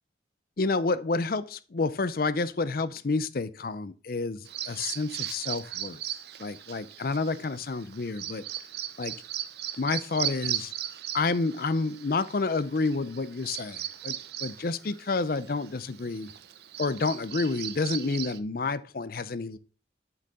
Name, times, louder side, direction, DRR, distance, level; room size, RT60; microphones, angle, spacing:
voice 1, 0.6-6.0 6.4-8.5 9.0-9.1 9.8-10.7 11.1-16.3 16.8-19.6, left 3 dB, 50° left, 0.5 m, -29 dB
Bird vocalization bird call bird song, 4.5-18.4, right 12 dB, 60° right, 0.6 m, -38 dB
7.9 x 6.6 x 3.7 m
head